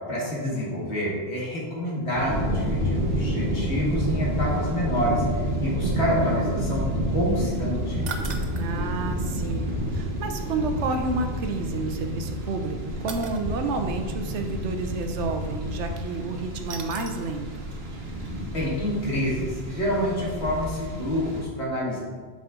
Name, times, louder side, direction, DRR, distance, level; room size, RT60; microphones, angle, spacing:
voice 1, 0.1-5.2 5.6-6.8 7.1-8.1 18.5-22.0, equal, 70° left, -5 dB, 2.2 m, -27 dB
sound 1, 2.2-21.4, equal, 65° right, 1.3 m, -29 dB
sound 2, 8.1-8.7 11.1-11.2 13.1-13.4 16.7-17.3 17.8-17.9 18.2-18.3, right 4 dB, 45° right, 0.7 m, -37 dB
voice 2, 8.5-17.5, right 3 dB, 90° right, 6 dB, 1.1 m, -30 dB
7.5 x 5.6 x 3.7 m, 1.5 s
omnidirectional pair, 1.2 m